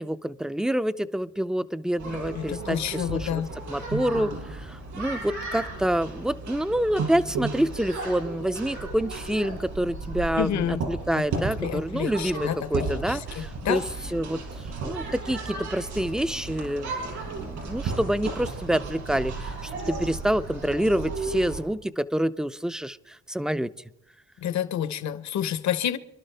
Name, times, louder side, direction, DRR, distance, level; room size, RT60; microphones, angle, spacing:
voice 1, 0.0-3.4 3.7-13.8 14.1-14.4 14.8-23.7, right 1 dB, ahead, 0.4 m, -27 dB
sound 1, 2.0-21.6, right 3 dB, 75° right, 5.7 m, -34 dB
voice 2, 2.3-3.9 10.4-10.8 11.1-13.8 24.4-26.0, left 10 dB, 65° left, 0.9 m, -29 dB
27.0 x 11.5 x 3.4 m
cardioid pair, 90°, 30 cm